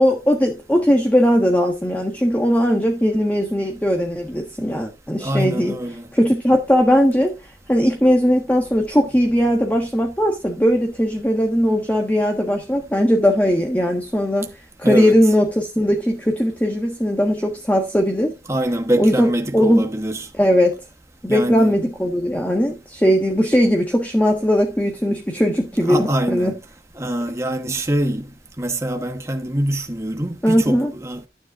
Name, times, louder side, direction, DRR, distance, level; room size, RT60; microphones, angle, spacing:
voice 1, 0.0-5.8 6.1-7.3 7.7-14.5 14.8-18.4 19.0-19.9 20.4-20.7 21.2-26.5 30.4-30.9, equal, 10° left, 1.4 m, -19 dB
voice 2, 5.2-6.1 14.8-15.2 18.5-20.3 21.3-21.8 25.8-26.5 26.9-28.3 28.6-31.3, right 1 dB, 15° right, 1.1 m, -24 dB
12.5 x 9.9 x 2.5 m
head